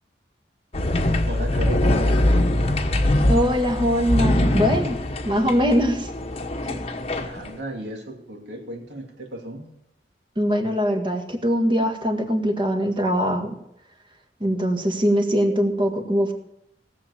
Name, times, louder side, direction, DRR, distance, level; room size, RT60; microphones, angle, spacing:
sound 1, 0.7-7.5, left 1 dB, 35° left, 1.1 m, -22 dB
voice 1, 1.3-2.4 7.2-9.7, right 1 dB, 70° right, 2 dB, 2.7 m, -34 dB
voice 2, 3.3-5.0 5.3-6.1 6.6-6.8 10.4-13.6 14.4-16.3, equal, 30° right, 4 dB, 1.8 m, -22 dB
17.5 x 7.5 x 7.1 m, 0.80 s
head